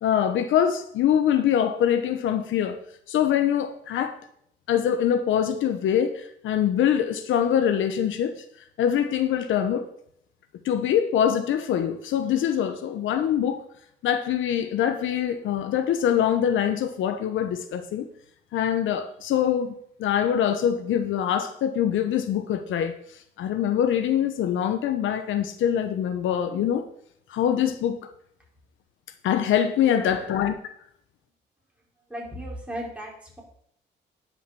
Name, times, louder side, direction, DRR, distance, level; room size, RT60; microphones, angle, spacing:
voice 1, 0.0-2.8 3.1-4.2 4.7-8.4 8.8-9.9 10.6-13.6 14.0-18.1 18.5-19.7 20.0-23.0 23.4-26.9 27.3-28.1 29.2-30.5, left 9 dB, 75° left, 1.0 m, -24 dB
voice 2, 32.1-33.4, equal, 5° right, 5.0 m, -35 dB
9.8 x 6.5 x 6.8 m
cardioid pair, 90°, 20 cm